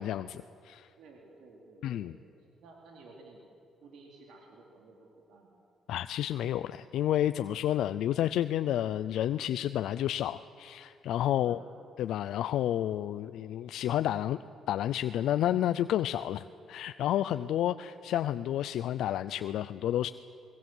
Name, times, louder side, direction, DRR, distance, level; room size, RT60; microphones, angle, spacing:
voice 1, 0.0-0.9 1.8-2.1 5.9-11.6 12.0-14.4 14.7-20.1, left 11 dB, 80° left, 12 dB, 0.5 m, -30 dB
voice 2, 1.0-3.4 3.8-5.5 11.4-11.6, right 3 dB, 80° right, 0 dB, 3.5 m, -54 dB
23.0 x 21.5 x 7.9 m, 2.6 s
cardioid pair, 90°, 0 cm